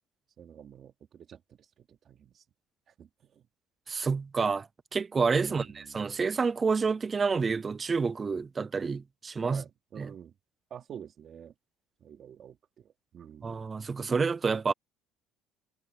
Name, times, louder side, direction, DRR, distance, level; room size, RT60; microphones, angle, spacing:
voice 1, 0.4-2.4 2.9-3.5 5.4-6.1 9.4-10.3 10.7-11.5 12.0-13.6, right 9 dB, 35° right, 3.4 m, -49 dB
voice 2, 3.9-9.6 10.0-10.1 13.4-14.7, right 5 dB, 20° right, 0.5 m, -29 dB
cardioid pair, 150°, 0 cm